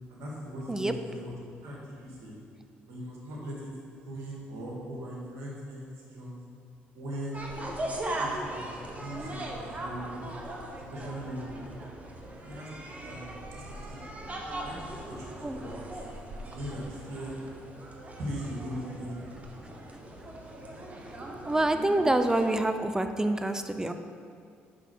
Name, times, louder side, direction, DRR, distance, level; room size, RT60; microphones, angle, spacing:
voice 1, 0.1-1.4 1.6-2.4 2.9-3.7 4.0-6.4 6.9-7.4 8.2-10.4 10.9-11.7 12.4-14.0 14.6-15.8 16.5-17.3 18.2-19.2, equal, 75° right, -4 dB, 2.0 m, -40 dB
sound 1, 7.3-22.5, right 1 dB, 30° right, 1.3 m, -39 dB
voice 2, 21.5-23.9, right 1 dB, 15° right, 8 dB, 0.6 m, -26 dB
6.2 x 5.5 x 6.2 m, 2.3 s
supercardioid pair, 65°, 5 cm